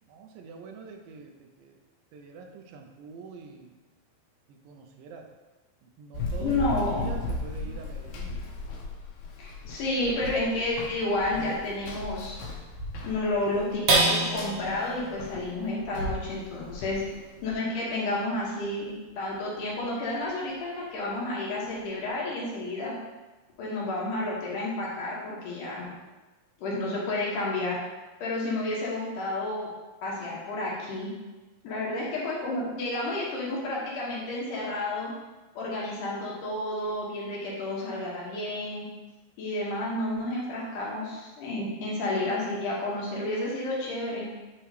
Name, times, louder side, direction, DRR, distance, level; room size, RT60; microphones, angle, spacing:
voice 1, 0.0-1.8 2.1-3.8 4.5-5.3 5.8-8.5 31.6-31.9, right 4 dB, 80° right, 3 dB, 2.3 m, -45 dB
Run, 6.1-17.5, left 2 dB, 85° left, 2.9 m, -37 dB
voice 2, 6.4-7.1 9.4-12.4 13.0-17.0 17.4-22.9 23.6-25.9 26.6-27.8 28.2-29.7 30.0-31.1 31.6-35.1 35.5-38.9 39.4-44.3, left 2 dB, 65° left, -4 dB, 2.6 m, -31 dB
sound 1, 13.9-20.6 21.1-21.2 21.6-22.0, right 2 dB, 60° right, 2.5 m, -31 dB
8.9 x 3.1 x 4.8 m, 1.2 s
omnidirectional pair, 4.3 m